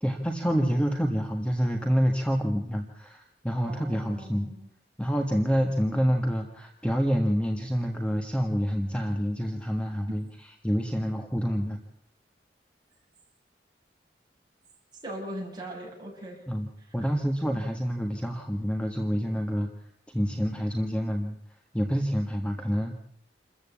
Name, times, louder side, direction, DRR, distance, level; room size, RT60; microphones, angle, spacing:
voice 1, 0.0-4.5 5.0-11.8 16.5-16.7 16.9-19.7 20.1-21.4 21.7-23.0, equal, 5° left, 3 dB, 1.5 m, -27 dB
voice 2, 3.7-4.7 15.0-16.4, right 1 dB, 25° right, -1 dB, 7.4 m, -39 dB
28.0 x 14.5 x 8.5 m, 0.77 s
head